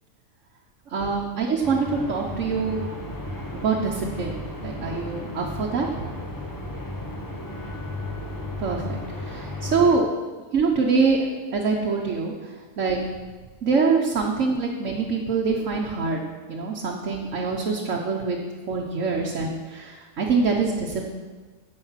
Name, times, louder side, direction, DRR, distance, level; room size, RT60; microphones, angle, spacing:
voice 1, 0.9-2.8 3.5-5.9 8.6-10.1 10.5-11.3 11.5-12.3 12.8-13.0 13.6-16.2 16.5-18.4 18.7-21.1, right 4 dB, 70° right, -1 dB, 1.3 m, -24 dB
sound 1, 1.6-10.0, left 1 dB, 15° left, 1.2 m, -34 dB
10.5 x 7.6 x 5.7 m, 1.4 s
omnidirectional pair, 1.3 m